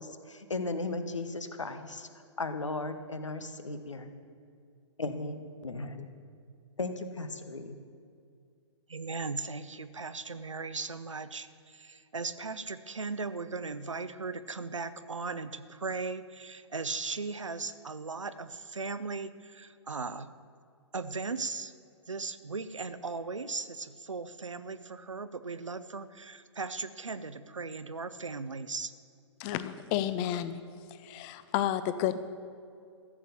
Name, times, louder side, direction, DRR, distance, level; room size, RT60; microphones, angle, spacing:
voice 1, 0.0-2.1 2.4-4.1 5.0-6.1 6.8-7.8, left 3 dB, 80° left, 9 dB, 1.1 m, -36 dB
voice 2, 8.9-20.3 20.9-21.7 22.1-28.9, right 4 dB, 85° right, 13 dB, 0.7 m, -37 dB
voice 3, 29.4-30.6 31.0-32.2, left 11 dB, 25° left, 13 dB, 0.6 m, -31 dB
14.5 x 7.3 x 7.0 m, 2.3 s
figure-of-eight pair, 120°, 16 cm